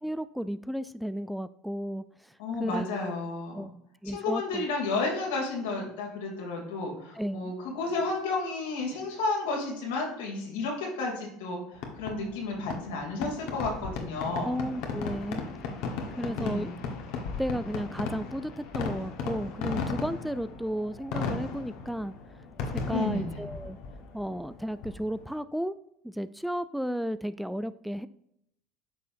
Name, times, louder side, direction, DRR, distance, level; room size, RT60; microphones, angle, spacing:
voice 1, 0.0-3.1 3.5-3.7 4.0-4.7 7.2-7.5 14.4-15.5 16.2-16.7 17.4-22.1 22.7-23.8 24.1-25.7 26.0-28.1, equal, ahead, 14 dB, 0.3 m, -33 dB
voice 2, 2.4-3.7 4.0-14.5 16.3-16.8 22.9-23.5, left 3 dB, 85° left, -1 dB, 2.7 m, -32 dB
Fireworks, 11.7-25.3, left 4 dB, 70° left, 1.3 m, -36 dB
9.0 x 5.5 x 2.6 m, 0.76 s
supercardioid pair, 100°, 0 cm